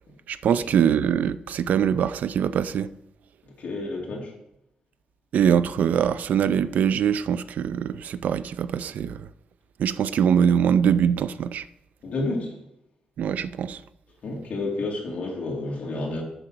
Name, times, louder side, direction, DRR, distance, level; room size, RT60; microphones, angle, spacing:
voice 1, 0.3-2.9 5.3-9.3 9.8-11.6 13.2-13.8, right 8 dB, 75° right, 0.4 m, -23 dB
voice 2, 3.6-4.3 12.0-12.5 14.2-16.2, left 2 dB, 60° left, 2.6 m, -30 dB
7.8 x 5.6 x 7.7 m
wide cardioid pair, 175°, 3 cm